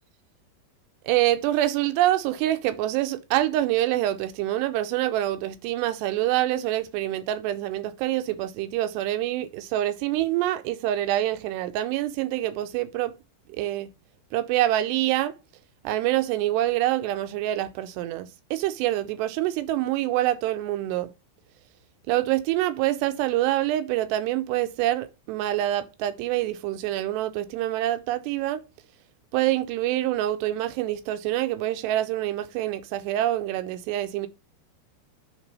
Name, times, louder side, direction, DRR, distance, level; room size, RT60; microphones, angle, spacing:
voice 1, 1.0-13.1 13.5-13.9 14.3-15.3 15.8-21.1 22.1-28.6 29.3-34.3, right 14 dB, 85° right, 2.7 m, -26 dB
9.1 x 3.5 x 5.3 m
omnidirectional pair, 4.9 m